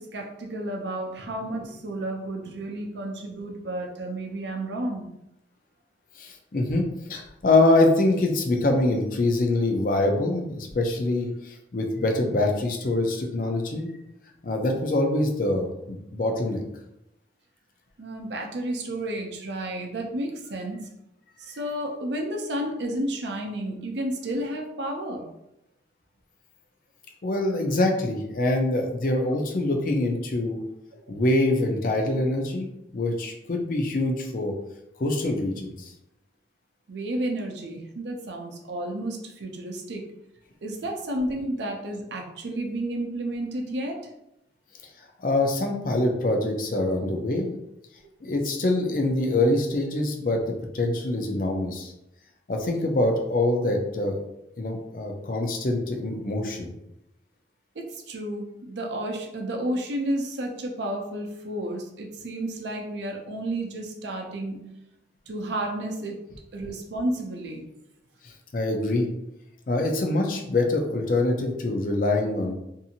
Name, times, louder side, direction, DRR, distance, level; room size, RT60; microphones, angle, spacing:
voice 1, 0.0-5.1 18.0-20.9 21.4-25.3 36.9-40.1 40.6-44.1 57.8-64.7 65.3-66.2 66.5-67.7, right 1 dB, 75° right, 1 dB, 0.5 m, -31 dB
voice 2, 6.2-13.9 14.4-16.6 27.2-30.6 31.1-34.5 35.0-35.9 45.2-47.5 48.2-51.9 52.5-54.2 54.6-56.7 68.2-69.1 69.7-72.5, left 2 dB, 50° left, 2 dB, 0.5 m, -24 dB
2.7 x 2.5 x 2.7 m, 0.84 s
head